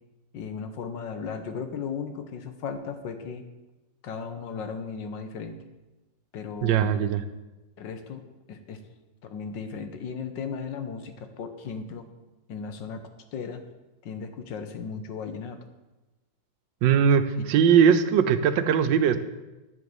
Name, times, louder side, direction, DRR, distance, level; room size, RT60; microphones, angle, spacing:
voice 1, 0.3-3.4 4.0-5.6 6.3-6.9 7.8-8.8 9.2-12.1 12.5-13.0 13.3-13.6 14.0-15.6, left 6 dB, 80° left, 8 dB, 1.7 m, -36 dB
voice 2, 6.6-7.2 16.8-19.2, right 7 dB, 90° right, 10 dB, 1.5 m, -20 dB
9.5 x 8.0 x 7.1 m, 1.1 s
omnidirectional pair, 1.9 m